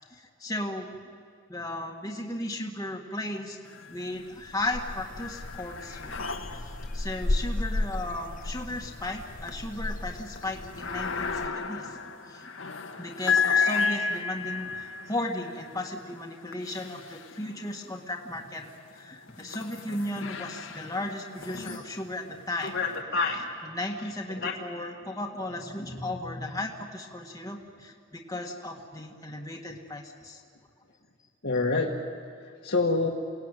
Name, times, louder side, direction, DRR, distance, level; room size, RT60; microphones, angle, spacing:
voice 1, 0.1-0.9 1.5-3.6 3.9-6.2 6.5-12.0 12.3-12.5 13.0-18.6 18.9-22.8 23.6-30.4, left 1 dB, 20° left, 0 dB, 1.8 m, -35 dB
sound 1, 3.7-4.3 4.7-17.9 18.5-23.0, left 5 dB, 80° left, 1.7 m, -34 dB
sound 2, 4.2-11.5, left 1 dB, 45° left, 0.8 m, -34 dB
voice 2, 22.6-23.4 24.4-24.5 31.4-32.0 32.6-33.1, left 3 dB, 60° left, -2 dB, 1.8 m, -26 dB
28.5 x 19.0 x 9.2 m, 2.2 s
head